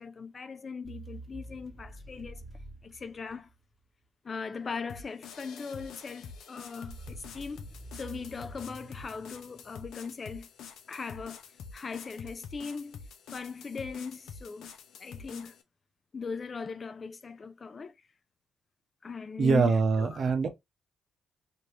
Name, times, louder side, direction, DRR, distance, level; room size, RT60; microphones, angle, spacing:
voice 1, 0.0-2.4 2.8-3.5 4.2-7.7 7.9-10.5 10.9-11.4 11.7-13.0 13.3-14.7 15.0-15.6 16.1-17.9 19.0-20.3, left 5 dB, 35° left, 0.4 m, -39 dB
sound 1, 0.8-3.8 6.8-10.3, right 2 dB, ahead, 1.7 m, -48 dB
sound 2, 4.9-15.6, left 6 dB, 75° left, 0.6 m, -47 dB
voice 2, 19.4-20.5, right 5 dB, 50° right, 0.7 m, -24 dB
2.9 x 2.6 x 3.2 m
cardioid pair, 90°, 0 cm